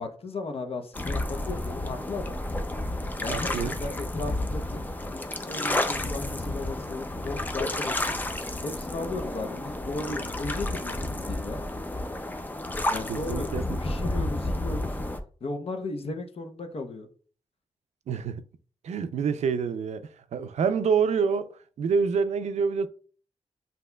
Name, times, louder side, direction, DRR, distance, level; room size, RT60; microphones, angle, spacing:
voice 1, 0.0-2.4 3.2-4.8 5.4-8.1 8.6-11.6 12.9-14.9 15.4-17.1, left 3 dB, 60° left, 0.7 m, -36 dB
sound 1, 0.9-15.2, left 1 dB, 15° left, 0.4 m, -31 dB
voice 2, 3.3-3.8 13.1-13.6 18.1-18.4 18.8-21.5 21.8-22.9, right 6 dB, 90° right, 0.4 m, -27 dB
7.7 x 2.8 x 2.2 m
wide cardioid pair, 130°, 11 cm